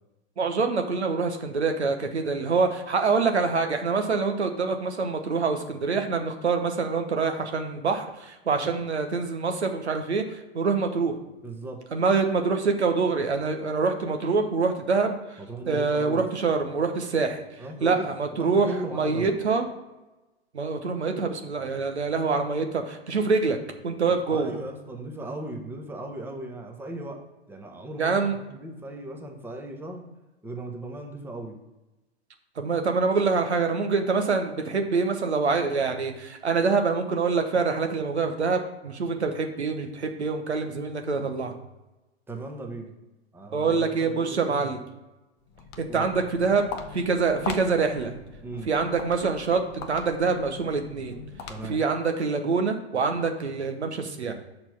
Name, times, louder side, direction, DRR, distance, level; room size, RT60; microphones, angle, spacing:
voice 1, 0.4-11.1 11.9-15.4 15.7-17.4 17.8-19.7 20.5-23.6 23.8-24.5 28.0-28.3 32.6-41.5 43.5-44.8 45.8-46.7 46.9-48.1 48.7-51.1 51.6-54.3, right 4 dB, 80° right, 5 dB, 1.1 m, -25 dB
voice 2, 11.4-11.8 15.5-16.3 17.6-18.1 18.3-19.4 24.1-30.0 30.4-31.6 42.3-43.0 43.3-44.8 45.9-46.1 48.4-48.7 51.5-51.8, right 1 dB, 5° right, 2 dB, 1.0 m, -37 dB
Walk footsteps, 45.4-52.0, left 5 dB, 30° left, 0.8 m, -40 dB
6.5 x 4.4 x 5.6 m, 1.0 s
figure-of-eight pair, 105°, 33 cm